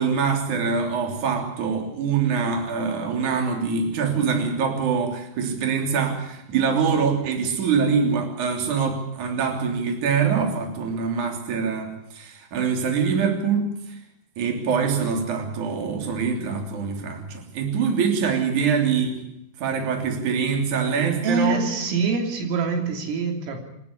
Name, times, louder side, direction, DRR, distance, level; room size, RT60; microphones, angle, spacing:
voice 1, 0.0-13.7 14.4-19.1 19.6-21.7, right 6 dB, 40° right, 3 dB, 4.1 m, -24 dB
voice 2, 21.2-23.6, right 4 dB, 90° right, 3 dB, 5.8 m, -25 dB
27.5 x 12.0 x 9.9 m, 0.80 s
omnidirectional pair, 5.6 m